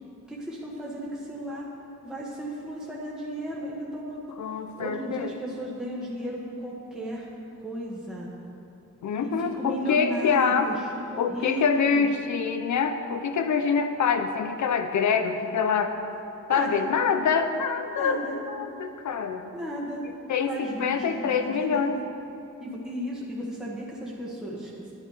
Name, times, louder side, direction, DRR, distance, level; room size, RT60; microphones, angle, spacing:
voice 1, 0.3-1.7 2.0-4.4 4.8-7.3 7.6-8.3 9.2-10.8 11.1-12.1 16.5-16.8 17.9-18.4 19.5-20.0 20.5-21.9 22.6-24.7, equal, ahead, -5 dB, 1.4 m, -34 dB
voice 2, 4.4-5.3 9.0-10.7 11.2-15.9 16.5-19.5 20.3-20.5 20.8-22.0, left 6 dB, 65° left, 8 dB, 0.8 m, -25 dB
9.8 x 9.7 x 4.9 m, 2.8 s
cardioid pair, 110°, 31 cm